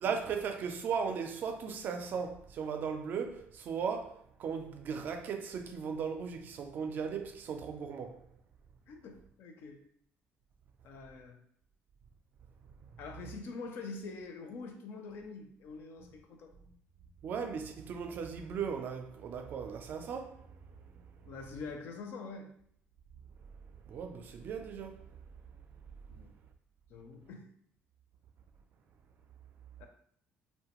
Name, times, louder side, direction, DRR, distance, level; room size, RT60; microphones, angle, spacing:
voice 1, 0.0-8.3 17.2-20.5 21.2-21.3 23.9-25.0, right 6 dB, 50° right, 0.3 m, -37 dB
voice 2, 8.9-9.8 10.8-11.4 13.0-16.5 21.2-22.5 26.1-26.3 26.9-27.5 29.8-29.9, left 4 dB, 60° left, 0.5 m, -45 dB
2.7 x 2.1 x 2.9 m
cardioid pair, 140°, 4 cm